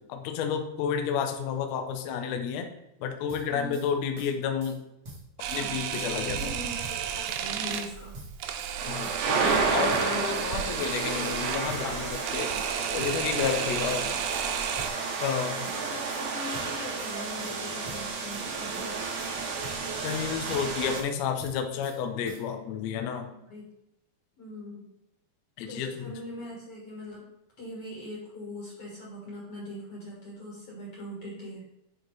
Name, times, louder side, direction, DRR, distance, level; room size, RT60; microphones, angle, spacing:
voice 1, 0.1-2.7 3.0-4.8 5.5-6.5 8.9-12.5 12.9-14.1 15.2-15.7 20.0-23.3 25.6-26.1, left 7 dB, 90° left, 5 dB, 1.5 m, -31 dB
sound 1, 3.3-3.9 4.2-4.8 5.0-5.6 5.9-6.5 6.8-7.4 7.7-8.7 9.0-9.6 9.9-10.5 10.8-11.4 11.7-12.3 12.5-13.6 13.9-14.5 14.8-15.4 15.6-16.2 16.5-17.1 17.4-18.5 18.7-19.3 19.6-20.2 20.5-21.1 21.4-22.0 22.3-22.5, right 1 dB, 40° right, 1.7 m, -46 dB
voice 2, 3.5-3.8 5.5-8.2 13.6-14.2 15.7-19.0 23.3-23.6 24.4-24.8 25.6-27.3 27.6-31.6, left 1 dB, 50° left, -4 dB, 2.2 m, -41 dB
Camera, 5.4-14.9, right 9 dB, 90° right, 1.8 m, -34 dB
sound 2, 8.8-21.0, right 4 dB, 70° right, 2.4 m, -31 dB
9.0 x 3.1 x 4.7 m, 0.87 s
omnidirectional pair, 4.2 m